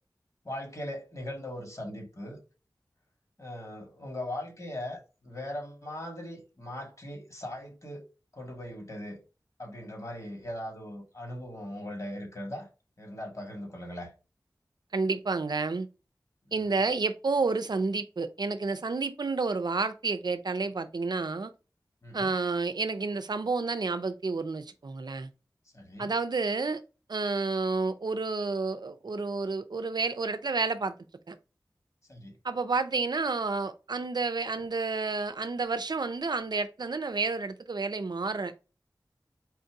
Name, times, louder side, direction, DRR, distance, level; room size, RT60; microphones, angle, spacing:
voice 1, 0.5-2.4 3.4-8.0 8.3-9.2 9.6-12.7 13.0-14.1 16.7-16.8 22.0-22.3 25.7-26.1 32.1-32.3, left 1 dB, 45° left, 1.8 m, -39 dB
voice 2, 14.9-15.9 16.5-21.5 22.1-25.3 26.0-26.8 27.1-30.9 31.3-31.4 32.4-38.5, right 4 dB, 70° right, 0.5 m, -30 dB
4.3 x 2.7 x 4.5 m
wide cardioid pair, 50°, 7 cm